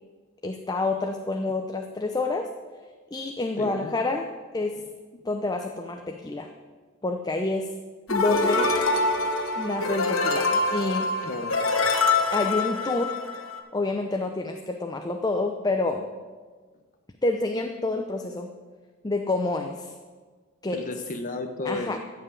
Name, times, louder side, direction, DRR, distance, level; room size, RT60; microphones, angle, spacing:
voice 1, 0.4-2.5 3.1-4.3 4.5-4.8 5.2-6.5 7.0-7.7 8.1-8.7 9.6-11.1 12.3-13.2 13.7-16.1 17.2-18.5 19.0-19.9 20.6-20.8 21.6-22.0, left 2 dB, 20° left, 4 dB, 0.6 m, -28 dB
voice 2, 3.6-3.9 11.2-11.6 20.7-22.0, left 2 dB, 40° left, 5 dB, 0.9 m, -33 dB
sound 1, 8.1-13.6, left 3 dB, 75° left, 1.3 m, -25 dB
14.5 x 5.7 x 8.4 m, 1.4 s
head